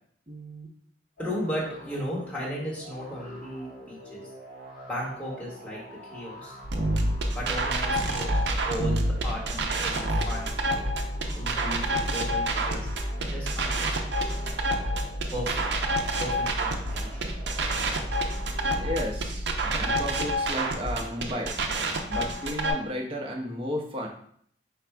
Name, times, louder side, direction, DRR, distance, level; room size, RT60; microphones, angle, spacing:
voice 1, 0.3-0.7 18.8-21.6 22.1-24.1, equal, 30° right, 0 dB, 0.8 m, -33 dB
sound 1, 1.2-19.6, equal, 55° left, 1.3 m, -46 dB
voice 2, 1.2-4.2 4.9-5.8 6.1-6.5 7.3-10.5 11.3-11.9 12.1-12.9 13.2-14.6 15.3-15.7 16.2-17.2, equal, 10° left, -6 dB, 1.3 m, -35 dB
sound 2, 6.6-20.3, equal, 75° left, 0.8 m, -35 dB
sound 3, 6.7-22.7, right 1 dB, 70° right, 0.6 m, -28 dB
5.0 x 2.2 x 4.5 m, 0.64 s
head